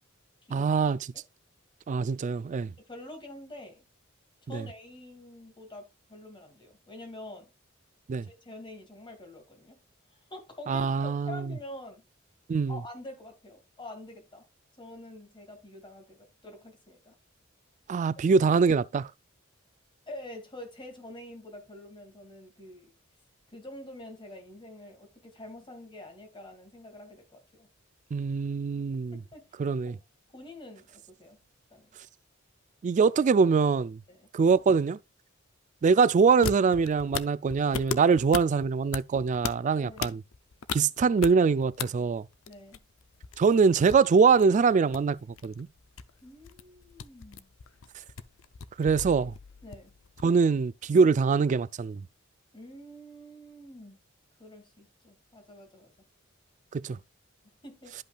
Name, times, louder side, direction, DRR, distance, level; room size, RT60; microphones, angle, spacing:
voice 1, 0.5-1.0 1.9-2.7 4.5-4.6 8.1-8.3 10.7-11.5 12.5-12.8 17.9-19.1 28.1-29.2 29.6-30.0 32.8-34.0 34.3-35.0 35.8-40.2 40.7-42.2 43.4-45.7 48.8-49.3 50.2-52.0 56.7-57.0, right 5 dB, 35° right, 0.3 m, -23 dB
voice 2, 2.8-3.9 4.4-7.5 8.2-9.8 10.3-12.0 12.7-14.4 14.8-17.1 20.1-22.9 23.5-27.7 29.1-29.5 29.9-30.0 30.3-31.4 31.7-31.9 34.1-34.3 39.8-40.2 42.5-42.8 46.2-47.5 49.6-49.9 52.5-54.0 54.4-55.9 57.4-57.9, left 1 dB, 25° left, 2.3 m, -46 dB
sound 1, 36.3-41.8 42.1-50.4, left 6 dB, 85° left, 0.6 m, -38 dB
11.5 x 5.4 x 2.3 m
head